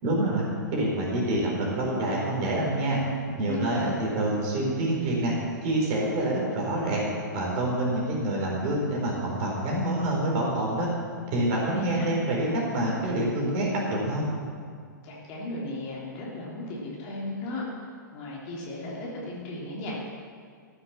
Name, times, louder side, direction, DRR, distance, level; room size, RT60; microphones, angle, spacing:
voice 1, 0.0-0.4 0.7-5.3 5.6-7.1 7.3-10.9 11.3-14.2, right 1 dB, 35° right, -3 dB, 4.1 m, -27 dB
voice 2, 3.4-3.9 11.6-12.1 15.0-17.6 18.1-20.1, left 2 dB, 35° left, -4 dB, 3.3 m, -36 dB
14.0 x 7.9 x 7.1 m, 2.1 s
figure-of-eight pair, 110°, 11 cm